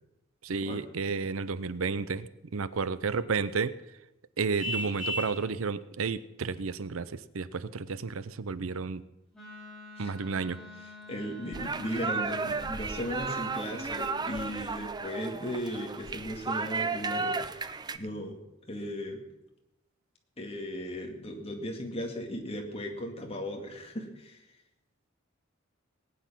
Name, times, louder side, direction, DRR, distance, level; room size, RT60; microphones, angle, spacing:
voice 1, 0.4-3.7 4.4-9.0 10.0-10.6, right 4 dB, 85° right, 16 dB, 0.7 m, -32 dB
Vehicle horn car horn honking, 4.6-5.4, equal, 40° right, 4.6 m, -33 dB
Wind instrument woodwind instrument, 9.3-14.5, left 3 dB, ahead, 5.8 m, -48 dB
voice 2, 10.8-19.2 20.4-24.5, equal, 30° left, 2 dB, 2.3 m, -37 dB
sound 1, 11.5-18.0, right 4 dB, 20° right, 0.5 m, -34 dB
19.0 x 9.6 x 5.9 m, 0.93 s
head